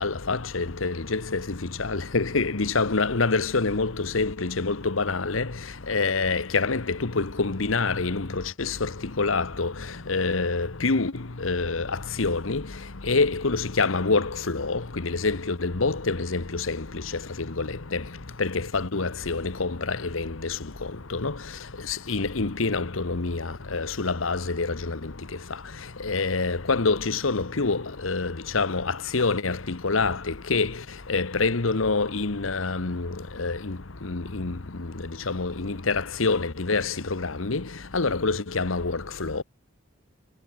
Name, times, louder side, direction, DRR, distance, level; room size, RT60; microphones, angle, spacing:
voice 1, 0.0-5.5 5.9-8.9 9.2-9.7 10.1-11.1 11.4-12.6 13.1-17.0 17.4-18.0 18.4-20.6 21.1-21.3 21.9-25.1 26.0-30.7 31.1-34.6 35.3-37.6 37.9-39.4, left 3 dB, 85° left, 1.2 m, -26 dB
head